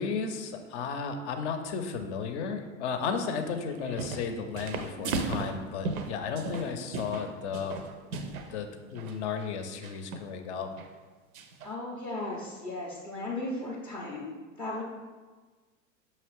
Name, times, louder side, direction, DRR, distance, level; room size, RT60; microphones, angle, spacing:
voice 1, 0.0-7.8 8.5-10.7, left 5 dB, 55° left, 6 dB, 0.6 m, -34 dB
sound 1, 3.7-4.3 4.6-8.5 8.9-9.2 9.8-10.3 10.8-10.9 11.3-11.7, right 3 dB, 80° right, 0.5 m, -35 dB
voice 2, 11.6-14.8, left 2 dB, 5° left, -4 dB, 0.3 m, -36 dB
5.6 x 2.9 x 3.0 m, 1.4 s
figure-of-eight pair, 80°, 42 cm